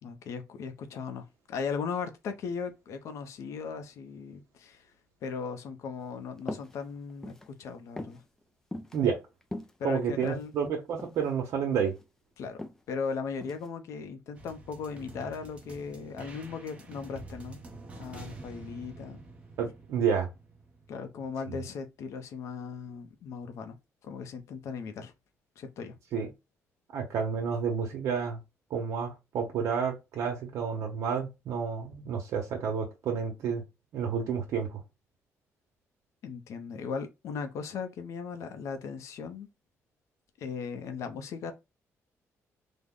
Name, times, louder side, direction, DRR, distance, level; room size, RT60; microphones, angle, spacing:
voice 1, 0.0-4.9 5.2-8.2 9.8-10.5 12.4-12.6 12.9-17.6 18.0-19.2 20.9-23.8 24.0-25.1 25.6-25.9 36.2-39.5 40.4-41.5, left 5 dB, 65° left, 0.6 m, -37 dB
sound 1, 6.4-6.7 7.1-7.5 8.0-8.2 8.7-9.0 9.4-10.5 11.0-11.2 11.6-12.0 12.6-12.8 13.4-13.7, left 1 dB, 10° left, 0.3 m, -40 dB
voice 2, 9.8-11.9 19.6-20.3 26.1-26.3 26.9-28.4 28.7-33.6 33.9-34.8, right 6 dB, 70° right, 0.9 m, -30 dB
sound 2, 14.3-20.9, right 3 dB, 20° right, 0.7 m, -47 dB
3.4 x 2.1 x 3.7 m
cardioid pair, 170°, 5 cm